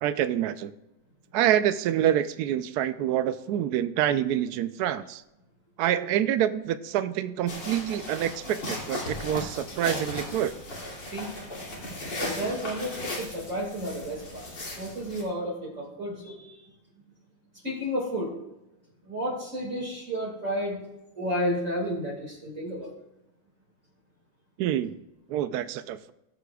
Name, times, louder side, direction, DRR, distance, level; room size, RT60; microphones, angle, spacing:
voice 1, 0.0-0.8 1.3-5.2 5.8-10.5 24.6-25.0 25.3-26.1, right 11 dB, 80° right, 12 dB, 0.8 m, -27 dB
sound 1, 7.5-15.2, left 1 dB, 60° left, 3.3 m, -37 dB
voice 2, 12.2-14.5 14.8-16.6 17.6-18.3 19.0-20.8 21.2-22.9, equal, 40° right, -3 dB, 2.4 m, -31 dB
19.5 x 8.2 x 2.3 m, 0.93 s
omnidirectional pair, 2.2 m